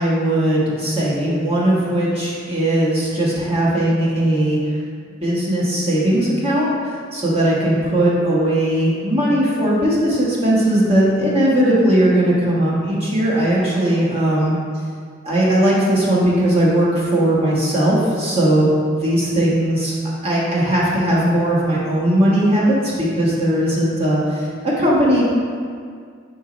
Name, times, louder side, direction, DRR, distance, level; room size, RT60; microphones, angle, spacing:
voice 1, 0.0-4.6 5.2-6.7 7.1-14.6 15.2-18.7 18.9-19.9 20.2-24.2 24.8-25.2, right 1 dB, 30° right, -7 dB, 1.2 m, -18 dB
4.5 x 4.3 x 4.9 m, 2.1 s
head